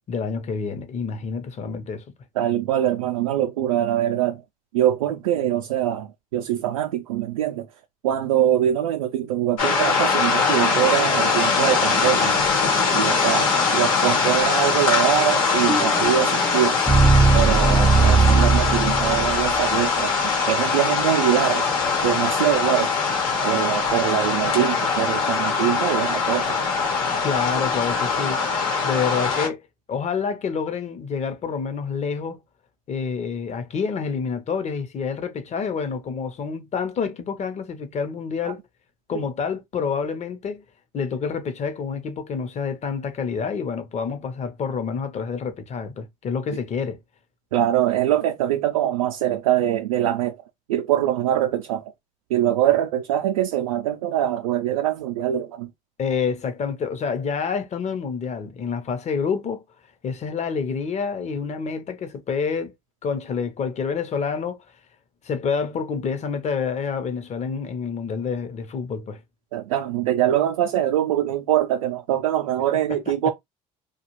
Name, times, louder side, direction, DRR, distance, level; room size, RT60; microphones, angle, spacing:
voice 1, 0.1-2.0 27.2-28.4 28.8-32.4 32.9-38.6 39.1-40.6 40.9-47.0 56.0-59.6 60.0-62.7 63.0-64.6 65.2-69.2 72.9-73.3, left 6 dB, 40° left, 0.8 m, -28 dB
voice 2, 2.4-4.4 4.7-7.7 8.0-12.4 12.9-16.7 17.3-21.7 22.0-22.9 23.4-26.6 46.5-46.6 47.5-50.4 50.7-51.9 52.3-55.7 69.5-73.3, right 11 dB, 90° right, 0.4 m, -23 dB
sound 1, 9.6-29.5, left 5 dB, 90° left, 1.1 m, -22 dB
sound 2, 15.7-19.8, right 4 dB, 15° right, 0.4 m, -19 dB
2.3 x 2.3 x 3.0 m
hypercardioid pair, 70°, 17 cm